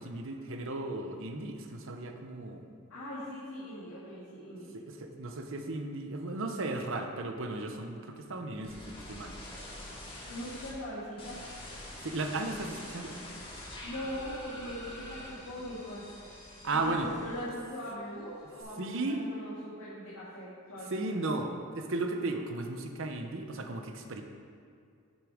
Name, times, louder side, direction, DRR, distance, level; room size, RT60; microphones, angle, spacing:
voice 1, 0.0-2.6 4.7-9.4 12.0-13.2 16.6-17.1 18.8-19.2 20.9-24.2, right 2 dB, 60° right, 5 dB, 0.9 m, -35 dB
voice 2, 2.9-4.7 10.2-11.5 13.8-16.0 16.6-21.2, equal, 80° left, -9 dB, 2.3 m, -41 dB
sound 1, 8.6-10.7 11.2-17.7 18.0-18.6, left 1 dB, 25° left, 1.9 m, -45 dB
9.4 x 6.7 x 5.1 m, 2.3 s
head